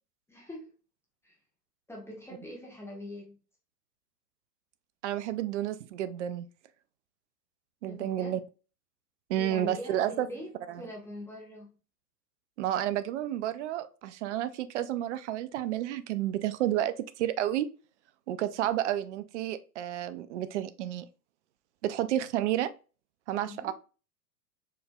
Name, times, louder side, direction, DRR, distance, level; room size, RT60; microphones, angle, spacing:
voice 1, 0.3-0.7 1.2-1.4 1.9-3.3 7.8-8.3 9.4-11.8 23.4-23.7, left 1 dB, 5° left, 1.2 m, -43 dB
voice 2, 5.0-6.5 7.8-8.4 9.3-10.3 12.6-17.7 18.3-21.1 21.8-22.7 23.3-23.7, right 12 dB, 45° right, 0.5 m, -31 dB
4.6 x 3.2 x 2.3 m
hypercardioid pair, 105°, 49 cm